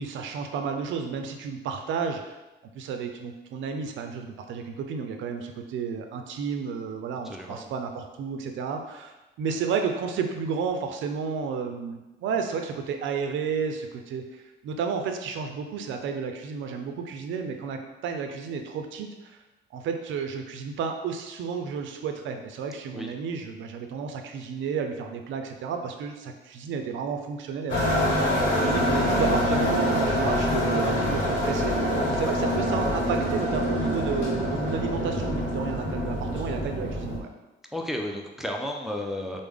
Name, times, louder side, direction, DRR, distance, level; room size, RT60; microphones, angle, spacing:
voice 1, 0.0-2.4 2.7-19.4 19.7-37.3, right 5 dB, 75° right, 5 dB, 0.4 m, -32 dB
voice 2, 7.2-7.7 22.9-23.1 37.7-39.4, left 1 dB, ahead, 1 dB, 0.4 m, -33 dB
sound 1, 27.7-37.2, equal, 75° left, 0.9 m, -25 dB
3.3 x 2.0 x 3.5 m, 1.1 s
cardioid pair, 90°, 20 cm